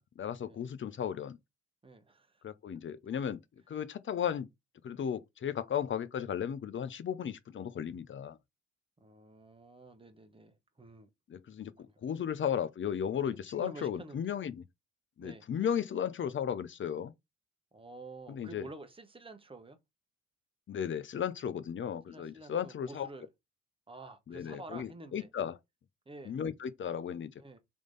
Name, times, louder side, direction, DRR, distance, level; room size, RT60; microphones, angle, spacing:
voice 1, 0.0-1.4 2.4-3.4 3.7-4.5 4.8-8.4 11.3-11.7 12.0-14.7 15.2-17.1 18.3-18.7 20.7-23.1 24.3-25.5 26.3-27.3, left 8 dB, 35° left, 0.6 m, -35 dB
voice 2, 1.8-2.4 9.0-11.1 11.9-12.0 13.2-14.3 15.2-15.5 17.7-19.8 22.1-23.3 23.9-25.3 26.1-26.3 27.4-27.6, right 2 dB, 15° right, 1.1 m, -50 dB
3.6 x 3.2 x 4.0 m
hypercardioid pair, 45°, 35 cm